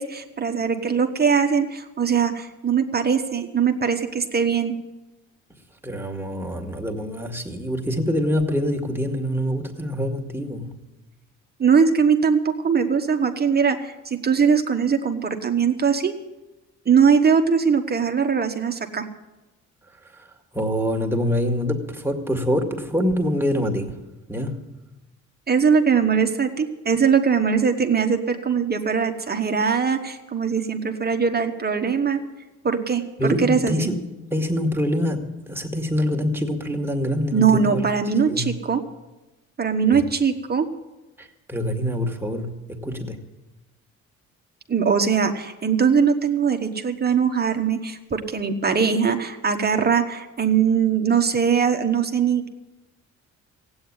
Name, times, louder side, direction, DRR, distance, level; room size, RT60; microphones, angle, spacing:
voice 1, 0.0-4.7 11.6-16.1 16.8-19.1 25.5-32.2 32.6-33.0 33.4-33.9 37.3-38.8 39.6-40.7 44.7-52.5, right 6 dB, 30° right, 6 dB, 1.2 m, -21 dB
voice 2, 5.8-10.7 20.0-24.0 24.3-24.7 33.2-34.0 34.3-37.8 38.3-38.5 39.9-40.0 41.2-43.2, equal, 5° right, 2 dB, 2.0 m, -25 dB
16.0 x 8.8 x 9.6 m, 1.1 s
cardioid pair, 90°, 30 cm